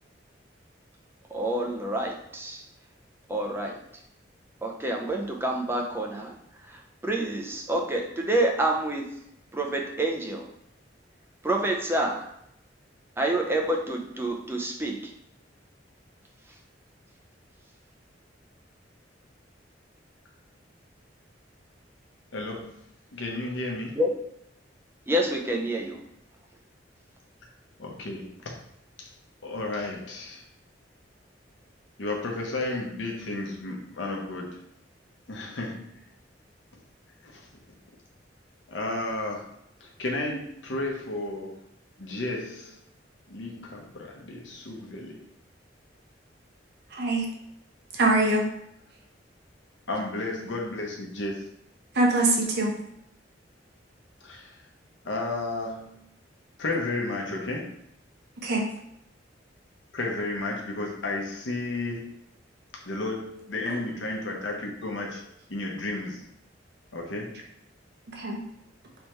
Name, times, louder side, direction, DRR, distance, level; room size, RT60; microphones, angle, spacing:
voice 1, 1.3-2.6 3.3-3.7 4.6-6.3 7.0-9.1 9.5-10.4 11.4-12.2 13.2-15.0 24.0-24.1 25.1-26.0, right 1 dB, 15° right, 1 dB, 0.5 m, -27 dB
voice 2, 22.3-22.7 23.1-24.0 27.8-28.3 29.0-29.1 29.4-30.4 32.0-34.6 35.3-36.0 37.2-37.4 38.7-39.5 39.8-41.6 42.0-42.8 43.3-45.2 49.9-51.5 54.2-54.6 55.0-56.1 56.6-57.7 59.9-62.1 62.9-65.2 65.5-66.3 66.9-67.4, left 2 dB, 80° left, 0 dB, 0.9 m, -32 dB
voice 3, 46.9-47.3 47.9-48.4 51.9-52.8 58.4-58.7 68.1-68.4, right 2 dB, 60° right, 0 dB, 0.8 m, -23 dB
3.5 x 3.3 x 3.0 m, 0.76 s
head